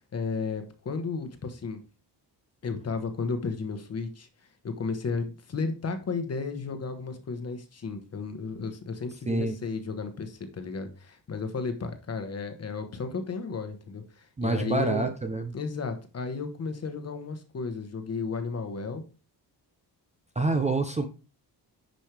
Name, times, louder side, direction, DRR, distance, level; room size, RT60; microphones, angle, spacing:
voice 1, 0.0-1.8 2.6-4.3 4.6-15.1 15.5-19.0, left 4 dB, 35° left, 8 dB, 1.2 m, -33 dB
voice 2, 14.4-15.5 20.4-21.0, right 3 dB, 15° right, 6 dB, 0.6 m, -27 dB
10.5 x 5.4 x 3.3 m, 0.33 s
wide cardioid pair, 180°, 42 cm